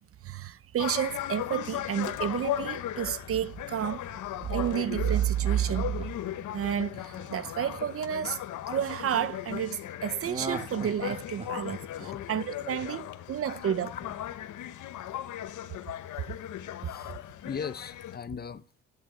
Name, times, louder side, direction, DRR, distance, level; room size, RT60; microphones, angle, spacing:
voice 1, 0.2-4.1 4.5-5.9 6.5-8.4 8.7-11.8 12.3-13.9, right 10 dB, 50° right, 0.6 m, -30 dB
sound 1, 0.8-18.2, left 12 dB, 80° left, 1.1 m, -37 dB
Laughter, 4.4-8.6 10.2-13.2 13.6-13.7, right 3 dB, 20° right, 1.9 m, -42 dB
voice 2, 16.8-17.2 17.4-18.8, left 6 dB, 30° left, 0.7 m, -38 dB
11.5 x 9.1 x 7.8 m
cardioid pair, 90°, 30 cm